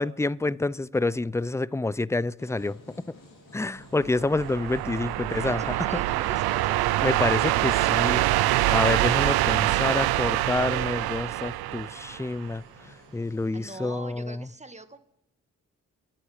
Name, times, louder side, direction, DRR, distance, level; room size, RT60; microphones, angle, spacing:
voice 1, 0.0-2.8 3.5-5.7 7.0-8.3 8.7-12.6 13.1-14.4, left 2 dB, 10° left, 0.5 m, -28 dB
sound 1, 2.4-14.0, left 2 dB, 60° left, 4.8 m, -52 dB
sound 2, 4.0-12.5, right 16 dB, 85° right, 0.5 m, -25 dB
voice 2, 5.2-6.9 13.5-15.0, right 2 dB, 20° right, 1.5 m, -43 dB
28.5 x 10.0 x 4.9 m
supercardioid pair, 40°, 37 cm